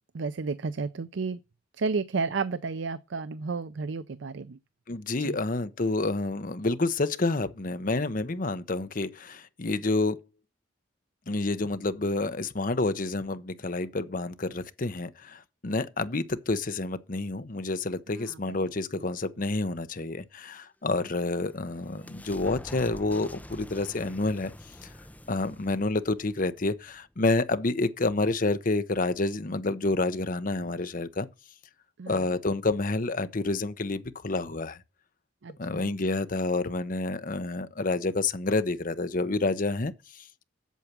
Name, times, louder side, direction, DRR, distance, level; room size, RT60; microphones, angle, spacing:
voice 1, 0.1-1.4 1.8-4.6 5.2-5.4 18.1-18.6 32.0-32.3 35.4-35.9, right 4 dB, 70° right, 0.5 m, -32 dB
voice 2, 4.9-10.2 11.3-24.5 25.3-31.3 32.1-34.8 35.6-40.2, left 2 dB, 45° left, 0.8 m, -29 dB
sound 1, 21.0-27.4, left 1 dB, 10° left, 0.7 m, -47 dB
8.2 x 7.2 x 6.0 m
head